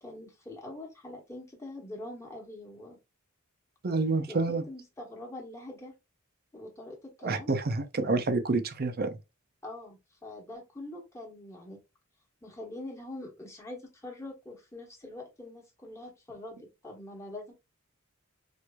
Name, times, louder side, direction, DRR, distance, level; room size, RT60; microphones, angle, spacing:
voice 1, 0.0-3.0 4.3-4.4 4.7-5.9 6.5-7.5 9.6-11.8 12.4-17.5, left 1 dB, 15° left, 1.2 m, -44 dB
voice 2, 3.8-4.6 7.2-9.2, right 3 dB, 45° right, 0.6 m, -28 dB
4.5 x 2.5 x 2.3 m
head